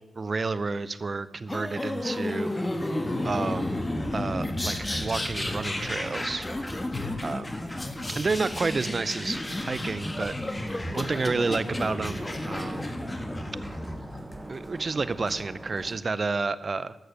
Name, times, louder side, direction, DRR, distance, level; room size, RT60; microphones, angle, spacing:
voice 1, 0.2-2.6 3.2-3.8 4.1-6.5 7.2-7.5 8.2-9.4 9.7-10.3 10.7-12.9 14.5-17.0, right 4 dB, 50° right, 15 dB, 0.7 m, -30 dB
sound 1, 1.5-14.2, left 1 dB, 20° left, 1.5 m, -32 dB
sound 2, 4.4-12.1, left 4 dB, 60° left, 0.8 m, -46 dB
sound 3, 7.5-15.9, right 1 dB, 25° right, 2.4 m, -43 dB
13.0 x 6.8 x 6.7 m, 0.96 s
cardioid pair, 50°, 0 cm